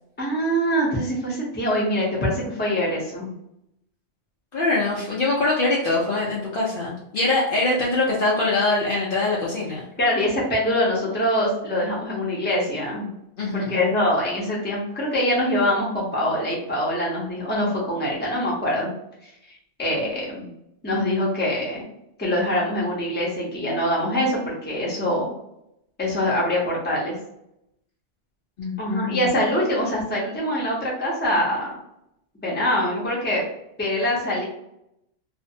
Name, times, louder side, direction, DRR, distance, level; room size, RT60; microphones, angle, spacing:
voice 1, 0.2-3.3 10.0-13.2 13.5-18.9 19.8-20.5 20.8-21.8 22.2-25.3 26.0-27.2 28.8-31.8 32.4-33.5 33.8-34.4, equal, 10° left, -5 dB, 0.6 m, -24 dB
voice 2, 4.5-9.8 13.4-13.8 28.6-29.3, left 2 dB, 55° left, -4 dB, 0.7 m, -23 dB
2.5 x 2.1 x 2.6 m, 0.81 s
omnidirectional pair, 1.2 m